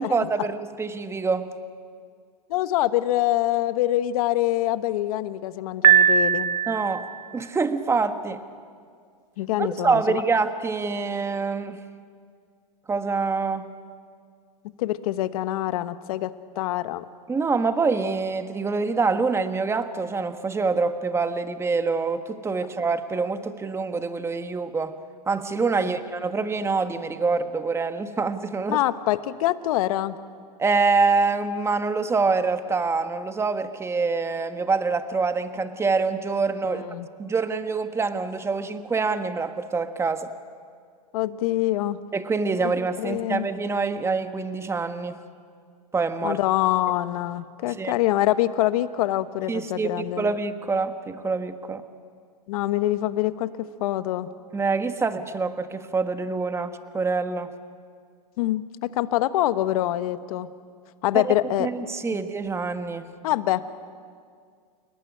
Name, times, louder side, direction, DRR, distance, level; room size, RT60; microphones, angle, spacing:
voice 1, 0.0-1.5 6.7-7.1 7.3-8.4 9.6-11.8 12.9-13.6 17.3-24.9 25.3-28.8 30.6-36.8 37.2-40.3 42.1-45.2 45.9-46.4 47.8-48.0 49.5-49.9 50.2-51.8 54.5-57.5 61.2-61.3 61.6-63.0, right 4 dB, 15° right, 9 dB, 1.4 m, -25 dB
voice 2, 2.5-6.6 9.4-10.2 14.8-17.0 25.8-26.0 28.7-30.2 36.7-37.1 41.1-42.0 42.6-42.7 43.0-43.5 46.2-50.3 52.5-54.3 58.4-60.5 61.0-61.7 63.2-63.6, left 14 dB, 60° left, 13 dB, 1.2 m, -25 dB
Piano, 5.8-7.1, right 8 dB, 85° right, 1.4 m, -19 dB
29.0 x 18.5 x 10.0 m, 2.1 s
hypercardioid pair, 115°, 21 cm